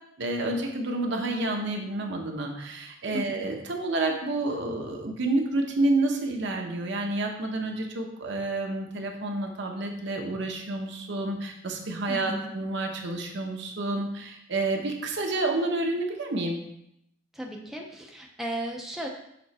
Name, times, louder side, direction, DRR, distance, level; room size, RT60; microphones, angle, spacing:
voice 1, 0.2-16.6, right 2 dB, 65° right, 2 dB, 0.9 m, -29 dB
voice 2, 12.1-12.5 17.3-19.1, right 1 dB, ahead, 0 dB, 0.6 m, -35 dB
7.0 x 3.8 x 4.2 m, 0.77 s
head